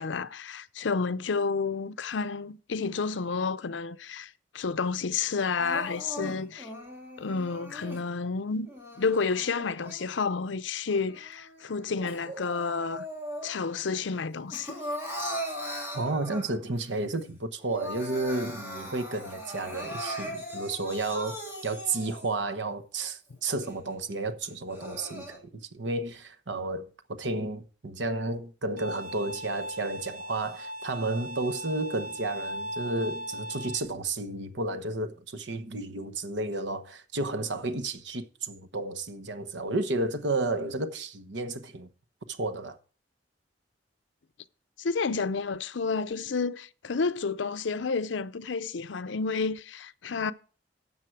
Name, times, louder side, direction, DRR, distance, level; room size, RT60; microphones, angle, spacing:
voice 1, 0.0-4.3 4.5-6.7 7.2-8.7 9.0-13.0 13.4-14.8 44.8-50.3, left 4 dB, 85° left, 0.6 m, -30 dB
Crying sobbing, 5.6-8.0 8.7-10.4 10.9-13.8 14.1-16.8 17.2-17.3 17.6-22.4 23.0-23.1 23.6-23.7 24.5-25.4, equal, 15° right, 3.1 m, -39 dB
voice 2, 15.9-25.4 25.7-41.9 42.3-42.8, right 2 dB, 75° right, 1.1 m, -32 dB
Bowed string instrument, 28.8-33.8, equal, 55° right, 1.8 m, -38 dB
13.0 x 7.4 x 4.5 m
head